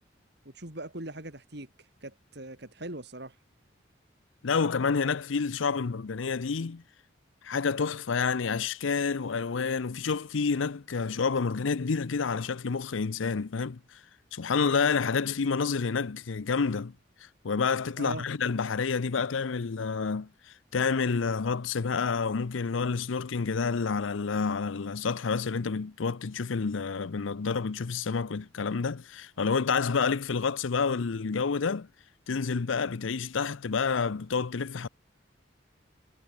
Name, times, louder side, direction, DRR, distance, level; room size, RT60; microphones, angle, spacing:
voice 1, 0.4-1.7 2.0-3.3 18.0-18.3, right 1 dB, 60° right, 4.5 m, -40 dB
voice 2, 4.4-6.8 7.4-14.0 14.3-16.9 17.4-20.3 20.7-31.9 32.3-34.9, left 5 dB, 90° left, 0.6 m, -29 dB
head